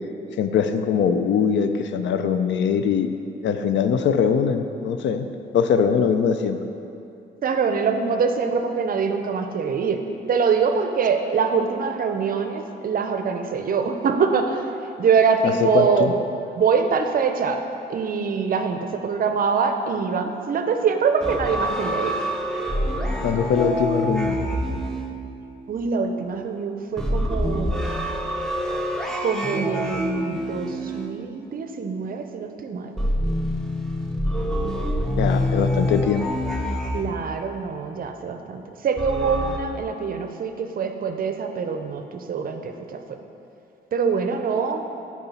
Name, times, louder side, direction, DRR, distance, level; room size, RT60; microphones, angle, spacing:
voice 1, 0.4-3.1 3.4-5.3 5.5-6.6 15.4-16.1 23.2-24.5 35.2-36.3, left 7 dB, 65° left, 8 dB, 0.4 m, -22 dB
voice 2, 7.4-10.0 10.3-14.6 15.0-16.1 16.6-17.6 17.9-22.1 25.7-27.8 29.2-32.9 36.9-43.0 43.9-44.8, right 5 dB, 45° right, 6 dB, 0.5 m, -24 dB
sound 1, 21.2-25.8 27.0-31.7 33.0-37.6 39.0-39.6, equal, 5° left, 0.7 m, -26 dB
6.7 x 4.8 x 4.2 m, 2.7 s
cardioid pair, 90°, 20 cm